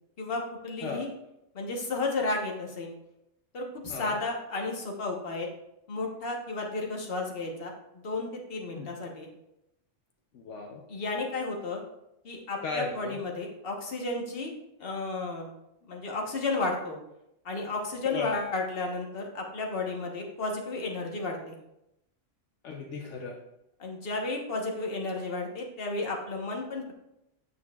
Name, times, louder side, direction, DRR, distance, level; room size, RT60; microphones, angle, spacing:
voice 1, 0.2-1.1 1.5-2.9 3.5-5.5 5.9-9.3 10.9-11.8 12.2-14.5 14.8-15.5 15.9-17.0 17.4-21.6 23.8-26.9, left 3 dB, 50° left, 1 dB, 1.3 m, -33 dB
voice 2, 10.3-10.8 12.6-13.2 18.0-18.3 22.6-23.3, left 5 dB, 70° left, 1 dB, 1.0 m, -35 dB
8.5 x 6.9 x 2.3 m, 0.86 s
omnidirectional pair, 1.3 m